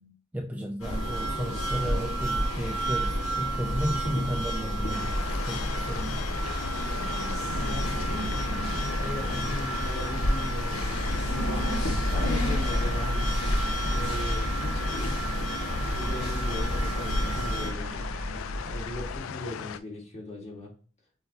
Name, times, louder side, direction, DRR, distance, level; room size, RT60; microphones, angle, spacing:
voice 1, 0.3-6.3, equal, 5° right, 1 dB, 0.4 m, -33 dB
sound 1, 0.8-17.7, equal, 90° left, 1.4 m, -30 dB
sound 2, 4.9-19.8, left 8 dB, 70° left, 0.3 m, -38 dB
sound 3, 7.4-19.2, equal, 85° right, 0.6 m, -32 dB
voice 2, 7.5-11.6 12.1-13.3 13.8-15.2 15.5-18.0 18.7-20.7, left 1 dB, 30° left, -2 dB, 1.6 m, -38 dB
5.7 x 2.6 x 2.7 m, 0.40 s
head